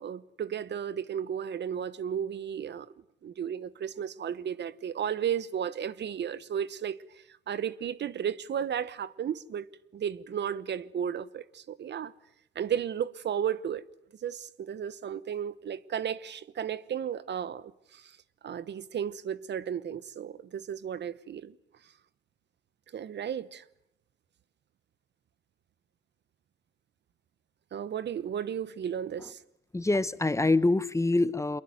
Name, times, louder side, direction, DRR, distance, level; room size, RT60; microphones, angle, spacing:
voice 1, 0.0-2.9 3.2-7.0 7.5-9.7 9.9-12.1 12.5-13.8 14.2-18.1 18.4-21.5 22.9-23.6 27.7-29.4, right 8 dB, 60° right, 1.0 m, -34 dB
voice 2, 29.7-31.6, left 2 dB, 15° left, 1.1 m, -25 dB
24.0 x 22.5 x 9.2 m
cardioid pair, 85°, 21 cm